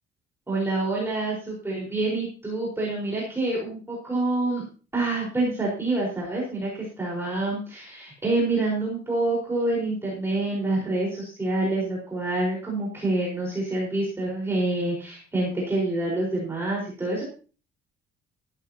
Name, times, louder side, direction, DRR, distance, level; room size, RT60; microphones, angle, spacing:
voice 1, 0.5-4.6 4.9-17.2, right 2 dB, 10° right, -4 dB, 4.5 m, -27 dB
15.0 x 13.5 x 2.9 m, 0.36 s
cardioid pair, 180°, 21 cm